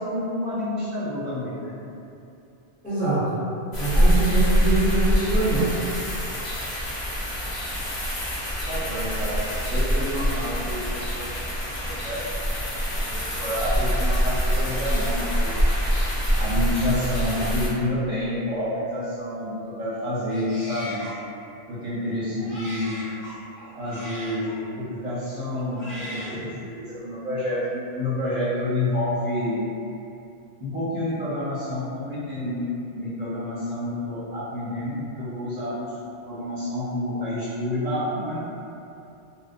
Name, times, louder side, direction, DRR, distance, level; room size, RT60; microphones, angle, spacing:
voice 1, 0.0-1.8 8.7-11.3 11.8-12.2 13.0-15.6 16.3-21.0 21.7-23.0 23.8-29.6 30.6-38.4, left 1 dB, 40° right, -12 dB, 0.7 m, -29 dB
voice 2, 2.8-3.2 3.8-5.7, right 3 dB, 10° left, -13 dB, 0.7 m, -24 dB
sound 1, 3.7-17.7, equal, 70° left, 1.0 m, -24 dB
Male speech man speaking, 20.3-21.2 22.0-24.6 25.5-26.4, equal, 40° left, 1.2 m, -39 dB
2.7 x 2.0 x 2.4 m, 2.6 s
omnidirectional pair, 1.2 m